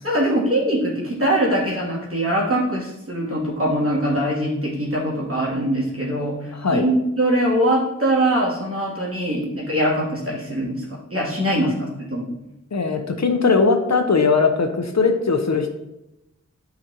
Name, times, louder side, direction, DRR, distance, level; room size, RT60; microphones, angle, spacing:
voice 1, 0.0-10.8 11.1-12.3, right 1 dB, 45° right, -5 dB, 2.7 m, -22 dB
voice 2, 6.5-6.8 11.6-11.7 12.7-15.7, left 4 dB, 60° left, 5 dB, 0.8 m, -19 dB
9.3 x 5.1 x 2.9 m, 0.90 s
wide cardioid pair, 75°, 30 cm